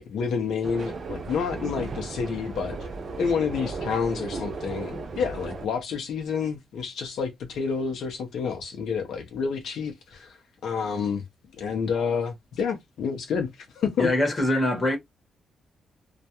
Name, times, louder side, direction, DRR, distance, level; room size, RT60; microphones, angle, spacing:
voice 1, 0.0-2.9 3.2-10.4 10.6-11.2 11.6-13.5 13.8-14.1, left 6 dB, 75° left, 0.6 m, -29 dB
sound 1, 0.6-5.7, right 3 dB, 40° right, 0.4 m, -35 dB
voice 2, 14.0-15.0, left 1 dB, 20° left, 0.9 m, -23 dB
2.2 x 2.1 x 2.8 m
wide cardioid pair, 160°, 0 cm